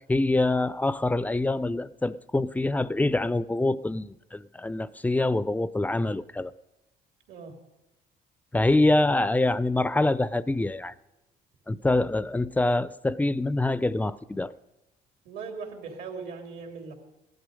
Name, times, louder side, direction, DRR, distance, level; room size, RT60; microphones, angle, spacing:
voice 1, 0.0-6.5 8.5-10.9 11.7-14.5, left 2 dB, 10° left, 17 dB, 0.4 m, -25 dB
voice 2, 15.2-16.9, right 5 dB, 75° right, 4 dB, 3.0 m, -39 dB
16.5 x 11.5 x 5.2 m, 0.98 s
cardioid pair, 110°, 17 cm